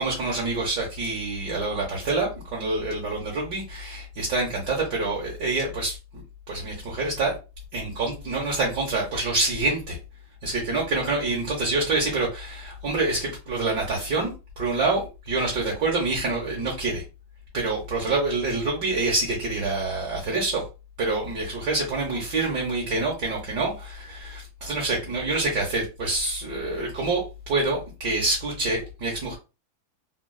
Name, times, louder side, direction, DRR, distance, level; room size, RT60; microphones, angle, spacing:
voice 1, 0.0-6.0 6.5-7.4 7.7-10.0 10.4-17.0 17.5-20.6 21.0-29.4, right 3 dB, 65° right, -3 dB, 1.3 m, -26 dB
3.3 x 2.2 x 2.2 m, 0.29 s
omnidirectional pair, 2.1 m